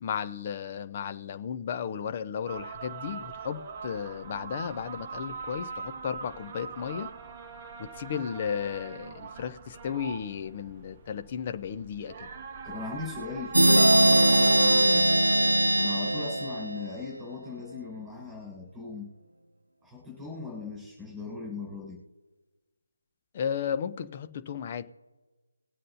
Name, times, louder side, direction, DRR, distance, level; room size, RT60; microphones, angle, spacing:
voice 1, 0.0-7.1 7.8-12.3 23.3-24.8, left 7 dB, 25° left, 9 dB, 0.7 m, -34 dB
sound 1, 2.5-15.0, right 5 dB, 25° right, 0.8 m, -41 dB
voice 2, 12.6-15.2 15.7-19.1 19.8-22.0, left 4 dB, 5° right, -2 dB, 4.0 m, -39 dB
sound 2, 13.5-17.1, right 1 dB, 80° right, 0.5 m, -21 dB
20.5 x 7.6 x 2.7 m, 1.3 s
figure-of-eight pair, 155°, 0 cm